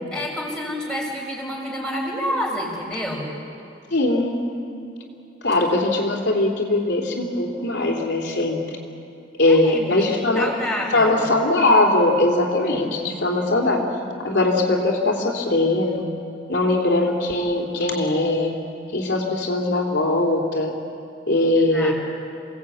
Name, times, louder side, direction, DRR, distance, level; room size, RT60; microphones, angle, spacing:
voice 1, 0.1-3.3 9.5-11.1 12.7-12.9 21.6-21.9, equal, 5° left, -3 dB, 5.3 m, -29 dB
voice 2, 3.9-4.4 5.4-8.6 9.4-10.5 10.9-13.8 14.2-16.1 16.5-18.5 18.9-20.7 21.3-21.9, left 2 dB, 65° left, 0 dB, 3.2 m, -20 dB
28.5 x 18.0 x 8.6 m, 2.8 s
head